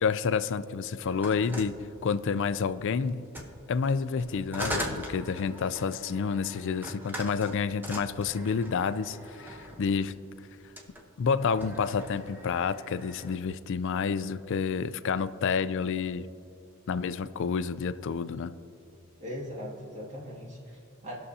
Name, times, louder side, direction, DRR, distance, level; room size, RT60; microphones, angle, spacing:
voice 1, 0.0-1.8 2.0-3.3 3.7-10.2 11.2-16.3 16.9-18.5, left 5 dB, 60° left, 13 dB, 0.4 m, -29 dB
sound 1, 1.0-2.6 3.2-9.9 10.6-11.0 11.4-13.4, equal, 10° right, 0.9 m, -40 dB
voice 2, 19.2-21.1, equal, 35° right, -4 dB, 2.1 m, -40 dB
19.5 x 6.5 x 2.8 m, 2.7 s
head